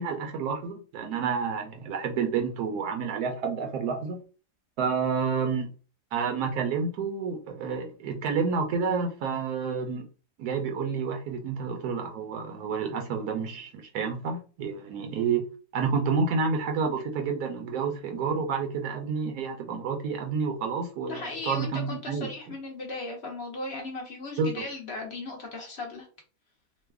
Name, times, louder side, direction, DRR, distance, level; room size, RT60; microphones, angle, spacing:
voice 1, 0.0-4.2 4.8-5.7 6.1-10.1 10.4-15.4 15.7-22.3 24.4-24.6, right 5 dB, 75° right, 1.1 m, -29 dB
voice 2, 21.1-26.1, left 2 dB, 55° left, 0.7 m, -37 dB
3.1 x 2.1 x 3.3 m
omnidirectional pair, 1.7 m